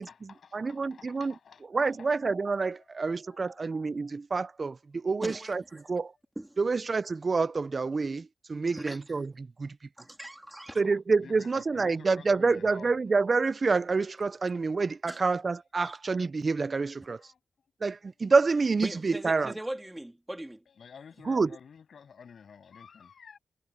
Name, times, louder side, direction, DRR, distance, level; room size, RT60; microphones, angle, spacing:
voice 1, 0.0-2.1 2.8-3.7 10.7-10.9 11.2-12.9 17.2-17.4 20.7-23.4, left 6 dB, 80° left, 7.7 m, -52 dB
voice 2, 0.5-1.3 1.7-5.6 5.9-6.1 6.6-9.8 10.8-17.2 17.8-19.5 21.3-21.5, right 4 dB, 50° right, 0.5 m, -27 dB
voice 3, 5.2-5.9 6.4-6.5 8.7-9.2 10.0-10.8 15.1-15.2 15.8-16.0 18.8-20.6, right 1 dB, 15° right, 2.6 m, -40 dB
cardioid pair, 60°, 0 cm